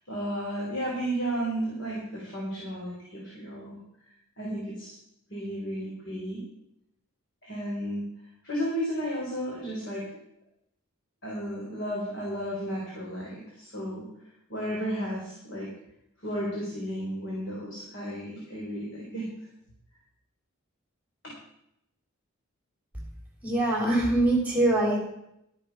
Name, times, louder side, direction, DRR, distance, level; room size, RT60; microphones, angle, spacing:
voice 1, 0.1-3.8 4.4-5.0 5.3-6.4 7.4-8.1 8.4-10.1 11.2-14.1 14.5-15.7 16.2-19.3 21.2-21.3, equal, 55° left, -4 dB, 3.7 m, -33 dB
voice 2, 23.4-25.0, right 1 dB, 5° right, -1 dB, 3.5 m, -23 dB
13.0 x 10.0 x 4.8 m, 0.79 s
head